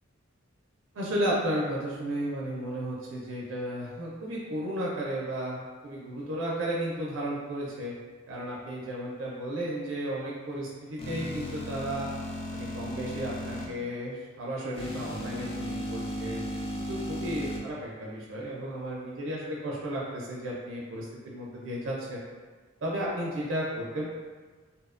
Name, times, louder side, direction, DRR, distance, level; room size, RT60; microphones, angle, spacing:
voice 1, 0.9-7.9 8.3-12.1 12.5-16.4 16.7-22.2 22.8-24.1, right 1 dB, 70° right, -4 dB, 0.4 m, -33 dB
sound 1, 11.0-13.6 14.7-17.6, equal, 30° left, 0.4 m, -35 dB
2.7 x 2.1 x 2.4 m, 1.4 s
head